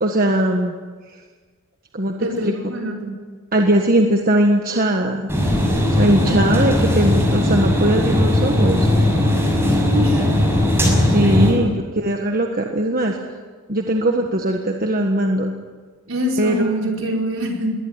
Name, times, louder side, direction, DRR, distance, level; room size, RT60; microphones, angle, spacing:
voice 1, 0.0-0.7 1.9-2.1 2.4-2.5 3.5-5.3 5.9-8.9 10.9-11.7 12.0-13.2 13.7-15.5 16.4-16.7, right 1 dB, 40° right, 3 dB, 1.6 m, -19 dB
voice 2, 2.2-3.1 9.8-10.2 11.3-11.7 16.1-17.7, equal, 65° right, 0 dB, 5.0 m, -24 dB
sound 1, 5.3-11.5, left 1 dB, 10° right, 6.3 m, -18 dB
22.0 x 18.0 x 9.8 m, 1.5 s
head